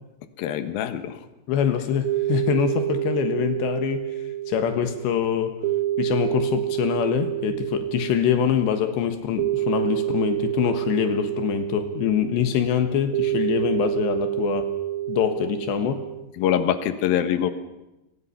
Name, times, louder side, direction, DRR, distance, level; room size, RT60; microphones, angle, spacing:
voice 1, 0.4-1.2 16.4-17.5, left 10 dB, 65° left, 9 dB, 3.0 m, -24 dB
voice 2, 1.5-4.1 4.5-5.6 6.0-14.7 15.1-16.0, left 9 dB, 80° left, 7 dB, 3.6 m, -24 dB
sound 1, 2.0-16.2, right 13 dB, 85° right, 1.6 m, -28 dB
29.5 x 25.5 x 5.8 m, 0.94 s
omnidirectional pair, 5.0 m